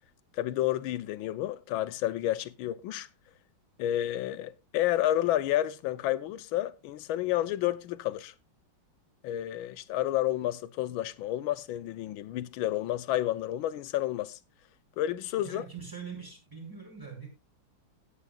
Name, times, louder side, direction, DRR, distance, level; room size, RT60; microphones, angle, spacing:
voice 1, 0.3-3.1 3.8-8.3 9.2-14.4 15.0-15.6, left 13 dB, 75° left, 1.5 m, -30 dB
voice 2, 15.4-17.3, right 6 dB, 10° right, 5.7 m, -43 dB
17.5 x 9.4 x 2.4 m
omnidirectional pair, 2.3 m